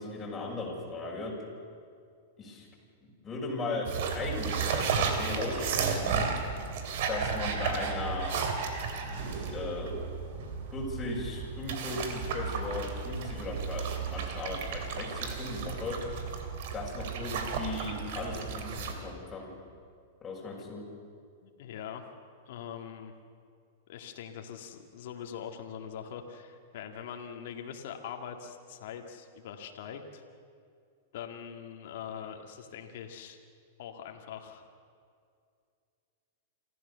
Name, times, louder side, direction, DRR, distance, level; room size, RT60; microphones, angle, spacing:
voice 1, 0.0-1.4 2.4-2.7 3.0-6.3 7.1-8.4 9.0-10.1 10.7-16.1 16.7-19.5 20.2-20.9, left 2 dB, 20° left, -4 dB, 6.2 m, -37 dB
sound 1, 3.8-18.9, right 5 dB, 60° right, 3.1 m, -33 dB
voice 2, 21.4-22.1 22.4-23.1 23.9-30.2 31.1-33.4 33.8-34.6, left 8 dB, 65° left, 4 dB, 2.2 m, -42 dB
27.5 x 14.0 x 7.0 m, 2.3 s
hypercardioid pair, 115°, 0 cm